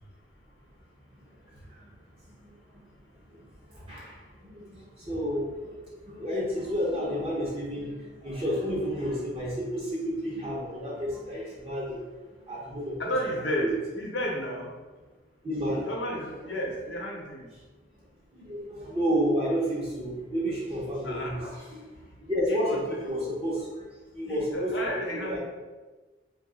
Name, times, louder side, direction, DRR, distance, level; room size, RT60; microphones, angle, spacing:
voice 1, 1.2-1.9 2.3-2.8 3.3-12.1 12.4-13.0 13.6-13.7 15.4-16.0 18.3-23.8 24.1-24.7 25.1-25.4, equal, 30° right, -6 dB, 0.6 m, -31 dB
voice 2, 13.0-14.7 15.8-17.5 21.0-21.4 22.5-23.0 24.3-25.4, equal, 85° left, -1 dB, 0.7 m, -32 dB
2.8 x 2.3 x 3.8 m, 1.3 s
head